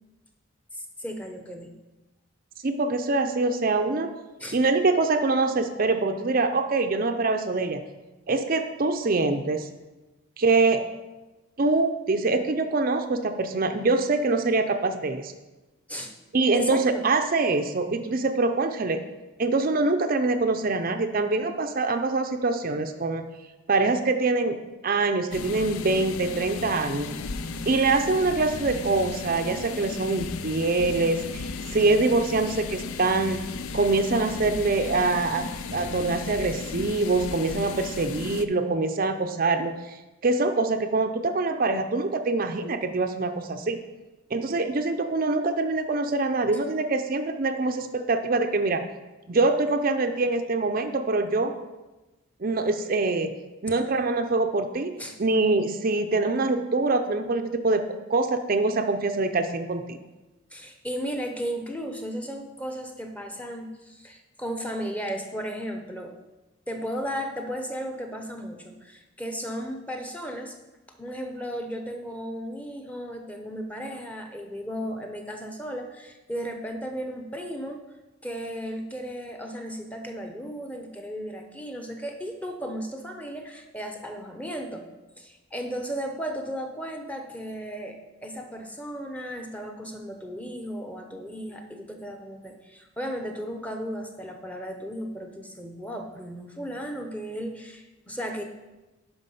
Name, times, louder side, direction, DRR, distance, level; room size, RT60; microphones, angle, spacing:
voice 1, 0.7-1.7 4.4-4.6 15.9-16.1 16.5-17.0 55.0-55.2 60.5-66.2 66.7-70.5 71.0-77.8 78.2-84.9 85.2-98.4, equal, 5° left, 4 dB, 0.7 m, -35 dB
voice 2, 2.6-4.1 4.5-7.8 8.3-9.7 10.4-10.8 11.6-15.3 16.3-19.0 19.4-23.3 23.7-24.6 24.8-27.1 27.7-33.4 33.7-35.4 35.7-40.0 40.2-43.8 44.3-48.8 49.3-51.5 52.4-53.3 53.6-60.0, right 3 dB, 40° right, 6 dB, 0.5 m, -24 dB
sound 1, 25.3-38.5, left 4 dB, 80° left, 0.5 m, -35 dB
9.7 x 5.6 x 5.4 m, 1.1 s
head